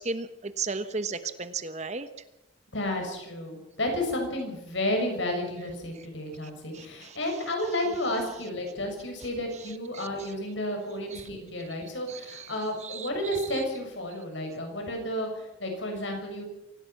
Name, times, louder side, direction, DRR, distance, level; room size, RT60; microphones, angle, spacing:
voice 1, 0.0-2.1 6.7-7.2 9.9-10.1 11.1-11.2 12.1-12.5 12.8-13.1 13.5-13.6, right 4 dB, 35° right, 11 dB, 1.2 m, -35 dB
voice 2, 2.7-16.4, left 1 dB, 75° left, 3 dB, 7.0 m, -32 dB
25.5 x 17.0 x 6.0 m, 0.93 s
head